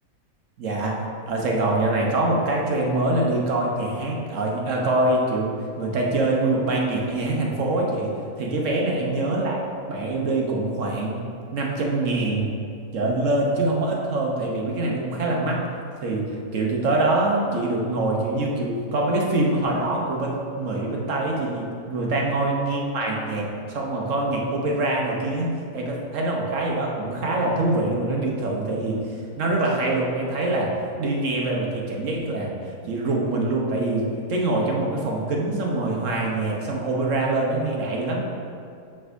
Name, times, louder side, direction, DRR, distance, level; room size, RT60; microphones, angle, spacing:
voice 1, 0.6-8.1 8.4-11.2 11.5-12.5 12.9-15.6 16.0-16.2 16.5-38.2, right 2 dB, 60° right, -1 dB, 1.3 m, -24 dB
7.5 x 6.1 x 2.6 m, 2.5 s
omnidirectional pair, 1.5 m